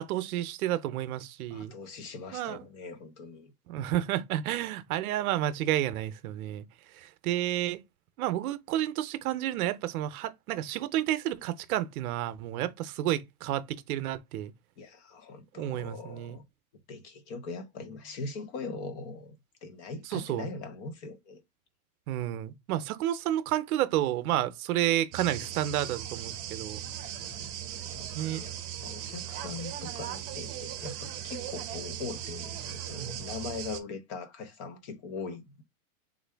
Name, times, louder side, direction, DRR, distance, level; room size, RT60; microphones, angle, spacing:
voice 1, 0.0-1.7 2.3-2.6 3.7-6.7 6.9-7.8 8.2-14.5 15.6-16.4 20.1-20.5 22.1-26.8 28.1-28.4 32.9-33.2, right 13 dB, 75° right, 0.6 m, -31 dB
voice 2, 1.5-3.5 14.8-16.4 16.9-21.4 27.1-28.5 28.8-35.6, left 4 dB, 50° left, 1.0 m, -41 dB
sound 1, 25.1-33.8, right 10 dB, 35° right, 0.7 m, -38 dB
3.6 x 2.5 x 3.3 m
supercardioid pair, 150°, 44 cm